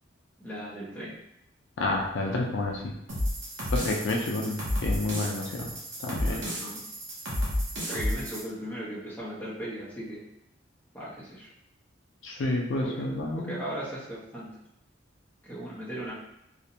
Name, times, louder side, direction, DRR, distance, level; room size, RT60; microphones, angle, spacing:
voice 1, 0.4-1.1 6.3-6.8 7.8-10.3 10.9-11.5 12.8-13.1 13.4-14.6 15.4-16.1, right 1 dB, 10° left, -8 dB, 0.7 m, -37 dB
voice 2, 1.8-2.9 3.7-5.7 6.0-6.4 12.2-13.6, left 2 dB, 70° left, 0 dB, 0.4 m, -29 dB
sound 1, 3.1-8.4, equal, 70° right, 0.8 m, -31 dB
2.4 x 2.1 x 2.8 m, 0.80 s
head